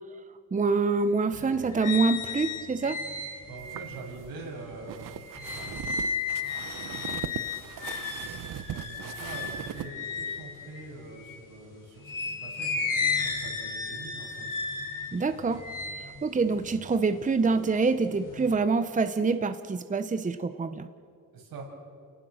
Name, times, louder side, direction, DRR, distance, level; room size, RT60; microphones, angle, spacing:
voice 1, 0.5-3.0 15.1-15.6 16.2-20.9, right 4 dB, 20° right, 10 dB, 0.8 m, -26 dB
sound 1, 1.3-11.5 12.0-17.5 17.9-18.5, left 5 dB, 60° left, 4.6 m, -34 dB
voice 2, 3.5-6.0 6.5-7.5 8.5-14.5 15.2-15.4 21.3-21.7, right 3 dB, 85° right, -2 dB, 7.2 m, -44 dB
sound 2, 3.6-9.9, right 10 dB, 65° right, 0.9 m, -39 dB
29.5 x 18.5 x 6.5 m, 2.3 s
cardioid pair, 100°, 35 cm